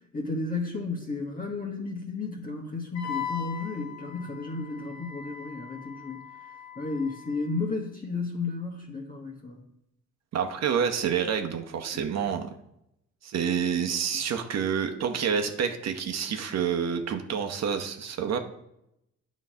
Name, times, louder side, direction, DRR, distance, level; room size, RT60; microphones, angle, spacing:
voice 1, 0.1-9.6 11.9-12.0, left 3 dB, 30° left, -1 dB, 1.3 m, -33 dB
Wind instrument woodwind instrument, 3.0-7.6, left 7 dB, 65° left, 0.8 m, -40 dB
voice 2, 10.3-12.5 13.2-18.4, right 7 dB, 60° right, 6 dB, 0.9 m, -28 dB
9.4 x 3.1 x 5.5 m, 0.81 s
cardioid pair, 90°, 30 cm